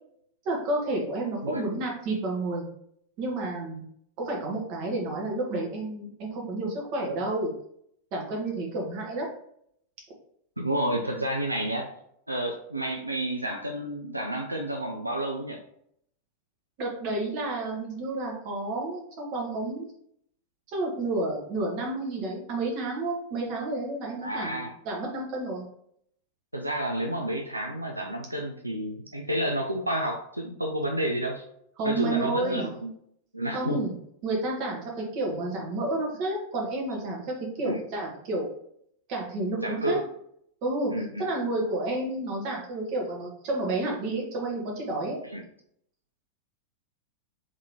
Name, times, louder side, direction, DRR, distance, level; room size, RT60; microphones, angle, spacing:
voice 1, 0.4-2.7 3.2-3.8 4.2-7.5 8.1-9.3 16.8-19.9 20.7-25.7 31.8-32.7 33.5-33.9 34.2-38.5 39.1-40.0 40.6-40.9 41.2-45.2, right 2 dB, 45° right, -2 dB, 1.4 m, -30 dB
voice 2, 10.6-11.9 12.3-15.6 24.2-24.7 26.5-31.4 31.8-32.9 33.3-33.8 37.7-37.8 39.6-40.0 40.9-41.3 45.2-45.4, right 1 dB, 85° right, 2 dB, 0.4 m, -30 dB
3.7 x 3.6 x 3.0 m, 0.70 s
figure-of-eight pair, 90°, 0 cm